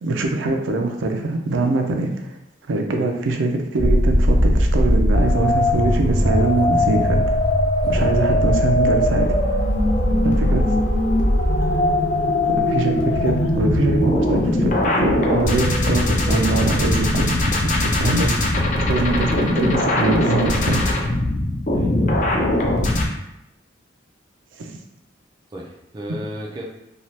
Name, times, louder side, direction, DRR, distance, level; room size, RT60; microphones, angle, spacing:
voice 1, 0.0-2.4 2.7-7.4 7.9-9.3 10.2-10.6 12.7-17.3 17.7-18.3 18.8-20.8 24.6-24.7 26.1-26.2, right 2 dB, 90° right, 3 dB, 0.4 m, -23 dB
sound 1, 3.8-23.1, left 1 dB, 40° left, 0.4 m, -19 dB
voice 2, 21.7-22.6 25.5-26.6, equal, 20° right, -2 dB, 0.3 m, -35 dB
2.8 x 2.3 x 3.1 m, 0.84 s
head